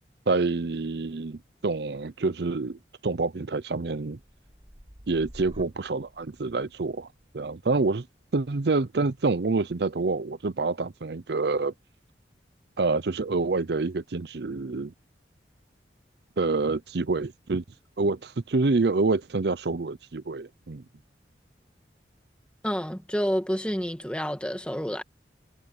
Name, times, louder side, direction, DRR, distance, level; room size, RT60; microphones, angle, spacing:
voice 1, 0.3-4.2 5.1-7.1 7.3-8.1 8.3-11.7 12.8-14.9 16.4-17.6 18.0-20.8, right 3 dB, 65° right, 0.6 m, -27 dB
sound 1, 4.0-11.9 12.4-12.8, equal, 30° right, 5.2 m, -53 dB
voice 2, 22.6-25.0, equal, 5° left, 1.4 m, -29 dB
head